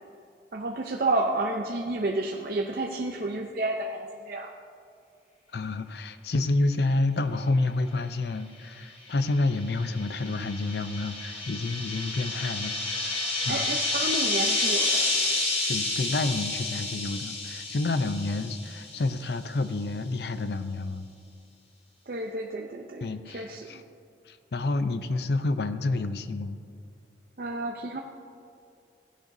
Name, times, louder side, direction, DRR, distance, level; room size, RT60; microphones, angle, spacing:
voice 1, 0.5-4.5 13.5-15.1 22.1-23.8 27.4-28.0, right 2 dB, 55° right, 1 dB, 0.6 m, -30 dB
voice 2, 5.5-13.8 15.7-21.1 23.0-23.8 24.3-26.6, left 2 dB, 65° left, 11 dB, 0.5 m, -29 dB
sound 1, 9.3-19.1, left 2 dB, 35° left, 1.8 m, -30 dB
16.0 x 10.5 x 2.7 m, 2.4 s
head